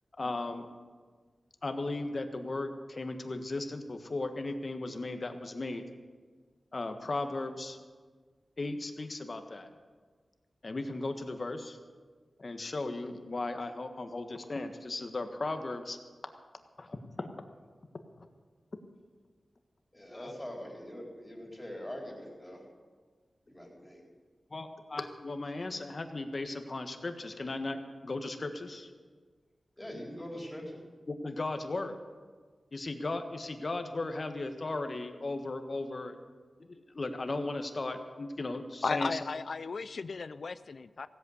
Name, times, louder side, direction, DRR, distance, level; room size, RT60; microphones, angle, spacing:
voice 1, 0.2-0.7 1.6-5.8 6.7-7.8 8.6-9.7 10.6-11.8 12.4-16.0 16.8-17.3 18.2-18.3 20.1-20.3 24.5-28.9 31.1-31.9 32.7-36.2 36.6-39.2, left 2 dB, 50° left, 7 dB, 1.5 m, -36 dB
voice 2, 19.9-22.6 23.5-24.0 29.8-30.8, left 1 dB, 15° left, -1 dB, 4.2 m, -43 dB
voice 3, 38.8-41.1, left 4 dB, 70° left, 14 dB, 0.4 m, -35 dB
16.5 x 8.2 x 8.2 m, 1.5 s
cardioid pair, 55°, 0 cm